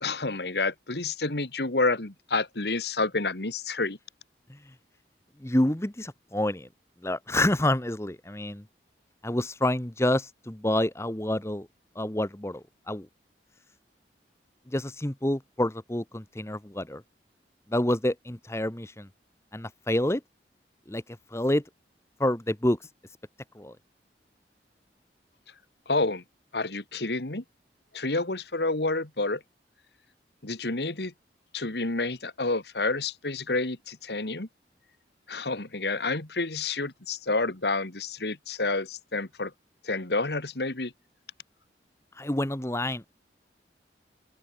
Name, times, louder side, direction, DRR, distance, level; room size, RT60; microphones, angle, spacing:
voice 1, 0.0-4.0 25.9-26.2 26.5-27.4 27.9-29.4 30.4-31.1 31.5-34.5 35.3-39.5 39.8-40.9, left 3 dB, 70° left, 2.0 m, -29 dB
voice 2, 5.4-6.7 7.0-8.6 9.2-11.7 11.9-13.1 14.7-17.0 17.7-19.1 19.5-20.2 20.9-21.0 21.3-21.6 22.2-22.8 23.5-23.8 42.2-43.1, left 1 dB, 15° left, 1.1 m, -28 dB
open air
head